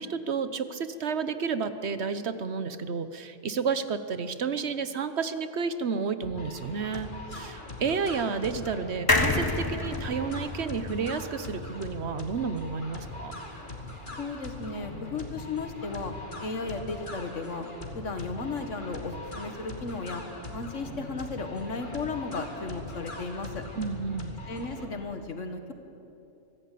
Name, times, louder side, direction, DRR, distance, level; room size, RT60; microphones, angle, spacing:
voice 1, 0.0-13.3 23.8-24.3, right 5 dB, 60° right, 11 dB, 1.2 m, -31 dB
sound 1, 6.2-24.9, left 2 dB, 40° left, 2.6 m, -41 dB
sound 2, 9.1-12.6 12.9-13.0 13.2-13.3, left 2 dB, 20° left, 1.2 m, -29 dB
voice 2, 14.2-16.1 16.4-17.7 17.9-20.2 20.5-23.6 24.5-25.7, left 3 dB, 80° left, 6 dB, 2.0 m, -35 dB
24.5 x 16.0 x 8.5 m, 2.9 s
omnidirectional pair, 1.3 m